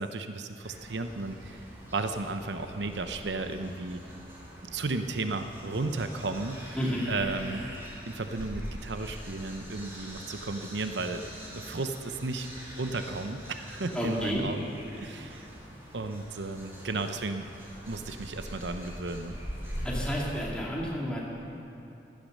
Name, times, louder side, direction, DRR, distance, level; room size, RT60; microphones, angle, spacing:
voice 1, 0.0-1.7 1.9-4.0 4.6-6.6 7.1-7.7 8.1-11.3 11.5-12.5 12.8-15.5 15.9-17.5 17.9-19.4, right 3 dB, 80° right, 8 dB, 0.8 m, -34 dB
sound 1, 0.6-20.5, equal, 15° right, 3.0 m, -43 dB
voice 2, 6.8-7.1 13.9-14.5 19.8-21.2, equal, 5° left, -5 dB, 2.4 m, -30 dB
15.5 x 12.0 x 6.5 m, 2.8 s
head